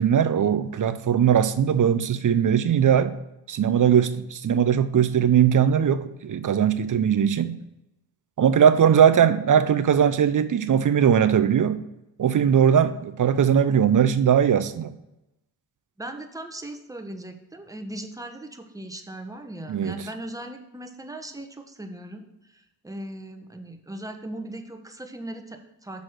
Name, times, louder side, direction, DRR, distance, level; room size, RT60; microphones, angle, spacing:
voice 1, 0.0-3.2 3.5-7.5 8.4-11.8 12.2-14.9 19.7-19.9, right 8 dB, 45° right, 13 dB, 0.7 m, -20 dB
voice 2, 16.0-26.0, right 1 dB, 10° right, 5 dB, 1.1 m, -38 dB
6.3 x 4.1 x 6.4 m, 0.92 s
supercardioid pair, 40°, 44 cm